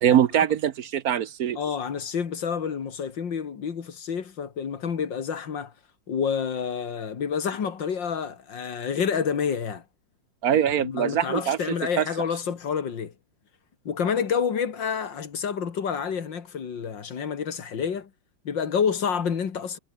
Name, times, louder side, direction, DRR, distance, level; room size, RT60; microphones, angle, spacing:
voice 1, 0.0-1.6 10.4-12.1, right 9 dB, 60° right, 1.2 m, -23 dB
voice 2, 1.6-5.7 6.1-9.8 10.8-13.1 13.8-18.1 18.4-19.8, left 7 dB, 85° left, 2.7 m, -28 dB
omnidirectional pair, 1.9 m